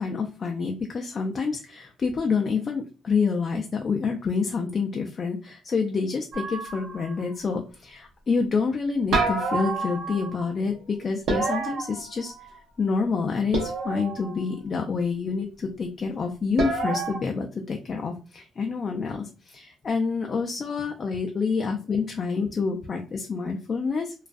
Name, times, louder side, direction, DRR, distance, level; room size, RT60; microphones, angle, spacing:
voice 1, 0.0-12.3 12.8-24.1, left 5 dB, 45° left, 2 dB, 0.4 m, -27 dB
sound 1, 6.3-7.2 9.1-10.5 11.3-12.6 13.5-14.4 16.6-17.2, right 3 dB, 75° right, 0.8 m, -28 dB
2.3 x 2.2 x 2.5 m, 0.34 s
cardioid pair, 80°, 0 cm